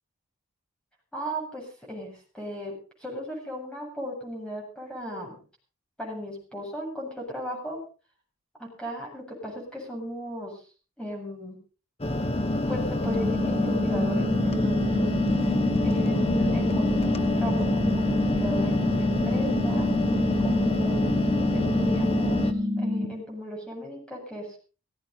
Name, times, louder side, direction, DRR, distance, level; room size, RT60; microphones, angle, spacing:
voice 1, 1.1-5.4 6.0-7.8 8.6-10.6 11.0-11.6 12.7-15.1 15.8-21.1 21.5-24.6, equal, 5° left, -1 dB, 7.9 m, -36 dB
sound 1, 12.0-22.5, left 1 dB, 25° left, 1.1 m, -27 dB
sound 2, 13.0-23.1, left 1 dB, 40° right, 3.5 m, -27 dB
17.5 x 16.5 x 4.1 m, 0.37 s
head